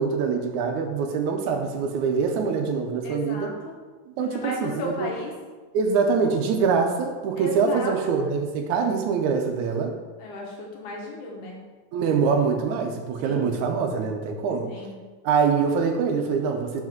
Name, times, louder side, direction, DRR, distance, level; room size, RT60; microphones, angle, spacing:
voice 1, 0.0-3.5 4.1-5.1 5.7-10.0 11.9-14.7 15.2-16.8, right 5 dB, 80° right, 4 dB, 2.1 m, -24 dB
voice 2, 3.0-3.7 4.2-5.3 7.4-8.2 10.2-11.6 13.2-13.5 14.7-15.0, left 2 dB, 85° left, -2 dB, 2.8 m, -34 dB
5.9 x 4.8 x 6.0 m, 1.3 s
omnidirectional pair, 3.4 m